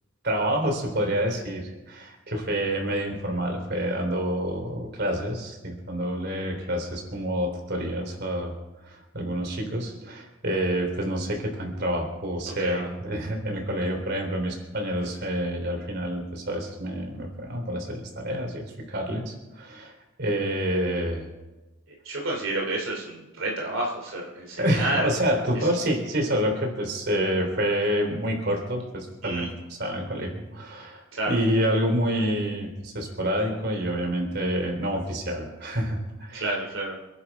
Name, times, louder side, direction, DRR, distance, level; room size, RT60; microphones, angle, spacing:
voice 1, 0.2-8.5 8.9-21.3 24.6-36.5, equal, 55° right, 3 dB, 3.5 m, -28 dB
voice 2, 21.9-25.1 29.2-29.5 31.1-31.3 36.3-36.9, right 2 dB, 75° right, -1 dB, 2.8 m, -30 dB
28.0 x 10.5 x 3.6 m, 1.1 s
head